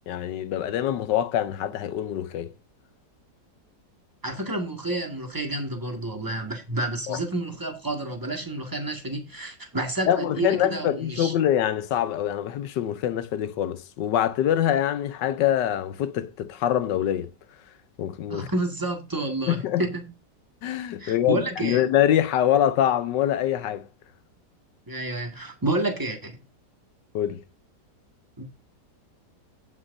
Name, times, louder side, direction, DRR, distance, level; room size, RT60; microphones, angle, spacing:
voice 1, 0.1-2.5 7.1-7.2 10.1-17.3 18.0-18.5 19.5-19.8 20.6-23.9 27.1-27.4, left 11 dB, 90° left, 1.4 m, -24 dB
voice 2, 4.2-11.3 18.3-20.1 21.0-21.8 24.9-26.4 28.4-28.5, right 2 dB, 10° right, 1.9 m, -29 dB
17.5 x 6.0 x 2.7 m
omnidirectional pair, 1.8 m